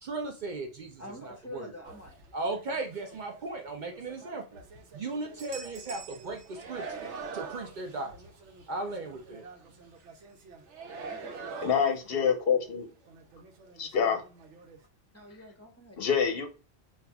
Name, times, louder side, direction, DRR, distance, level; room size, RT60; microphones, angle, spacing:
voice 1, 0.0-1.7 2.3-4.6 4.9-7.1 7.3-8.1 8.7-9.5, right 3 dB, 55° right, 3 dB, 0.6 m, -37 dB
voice 2, 1.0-2.2 11.0-11.8 15.1-16.2, left 1 dB, 15° left, 2 dB, 0.6 m, -47 dB
sound 1, 1.8-3.4 3.8-12.4 12.7-12.8 13.0-14.8, right 5 dB, 85° right, 1.0 m, -45 dB
voice 3, 11.6-12.9 13.8-14.2 16.0-16.5, left 7 dB, 60° left, 6 dB, 0.7 m, -26 dB
5.4 x 2.4 x 2.2 m, 0.34 s
omnidirectional pair, 1.2 m